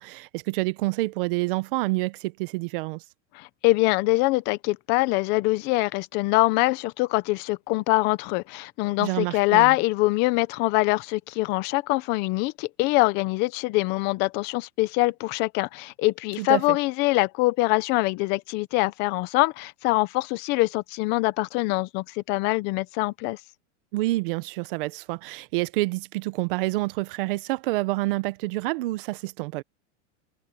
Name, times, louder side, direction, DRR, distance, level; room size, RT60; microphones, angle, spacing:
voice 1, 0.0-3.0 9.0-9.7 16.4-16.8 23.9-29.6, right 20 dB, 50° right, 1.0 m, -28 dB
voice 2, 3.3-23.4, left 21 dB, 30° left, 0.7 m, -24 dB
supercardioid pair, 165°, 36 cm